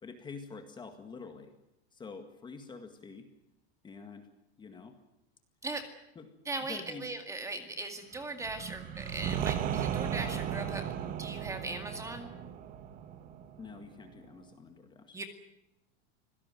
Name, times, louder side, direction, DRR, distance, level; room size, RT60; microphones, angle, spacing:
voice 1, 0.0-1.5 1.9-3.3 3.8-4.3 4.6-5.0 6.2-6.3 6.6-7.0 13.6-15.3, left 4 dB, 15° left, 6 dB, 1.9 m, -47 dB
voice 2, 6.5-10.9 11.2-12.3 15.1-15.3, right 2 dB, 10° right, 7 dB, 2.1 m, -39 dB
sound 1, 8.4-14.2, right 9 dB, 25° right, 1.3 m, -36 dB
26.0 x 17.0 x 9.1 m, 0.86 s
supercardioid pair, 170°, 33 cm